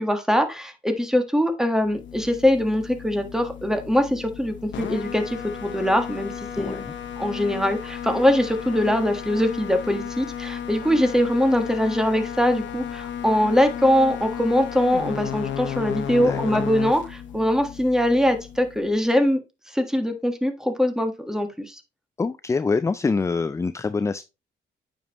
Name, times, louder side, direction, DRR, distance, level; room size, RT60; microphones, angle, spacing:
voice 1, 0.0-6.8 7.2-19.4 19.7-21.8, equal, 5° right, 1.4 m, -22 dB
sound 1, 1.8-19.0, left 8 dB, 70° left, 1.2 m, -34 dB
voice 2, 6.5-6.9 16.2-16.6 22.2-24.2, left 4 dB, 15° left, 0.3 m, -25 dB
9.1 x 5.3 x 2.9 m
cardioid pair, 90°, 20 cm